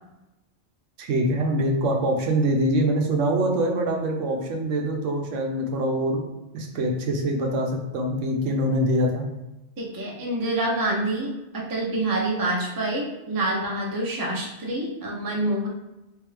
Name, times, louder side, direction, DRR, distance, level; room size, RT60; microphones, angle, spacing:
voice 1, 1.0-6.2 6.5-9.3, right 1 dB, 85° right, 2 dB, 1.0 m, -24 dB
voice 2, 9.8-15.7, right 1 dB, 25° right, -2 dB, 0.5 m, -27 dB
3.5 x 2.7 x 3.2 m, 0.98 s
omnidirectional pair, 1.2 m